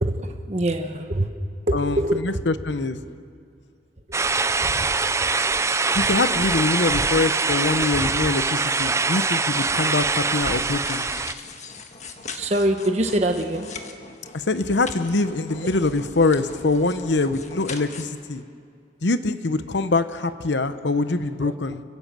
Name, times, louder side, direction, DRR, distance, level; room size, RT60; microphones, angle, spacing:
voice 1, 0.0-1.3 1.7-2.2 4.6-4.9 12.2-13.7 21.4-21.5, right 1 dB, 35° right, 5 dB, 1.2 m, -24 dB
voice 2, 1.7-3.0 5.9-11.1 14.3-18.4 19.0-21.8, left 3 dB, 75° left, 11 dB, 0.9 m, -24 dB
sound 1, 4.1-11.3, right 4 dB, 15° right, 0.5 m, -23 dB
sound 2, 10.8-18.0, left 4 dB, 40° left, 1.6 m, -40 dB
29.5 x 16.5 x 7.5 m, 2.3 s
head